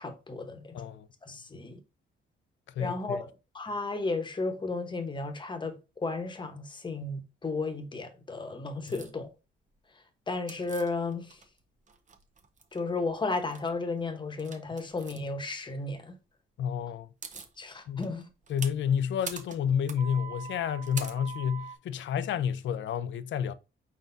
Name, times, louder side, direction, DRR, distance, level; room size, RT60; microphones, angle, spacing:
voice 1, 0.0-0.7 1.2-1.8 2.8-3.3 3.5-9.3 10.3-11.4 12.7-16.1 17.6-18.3, left 3 dB, 25° left, 1.0 m, -34 dB
voice 2, 0.7-1.1 2.8-3.2 8.9-9.0 16.6-17.1 17.9-18.1 18.5-23.5, left 8 dB, 70° left, 0.5 m, -30 dB
sound 1, 8.9-9.1 10.5-11.6 11.9-12.8 13.3-13.7 14.4-15.2 16.7-16.8 17.0-17.5 18.0-21.8, right 5 dB, 35° right, 0.8 m, -43 dB
5.0 x 4.1 x 2.6 m
cardioid pair, 100°, 20 cm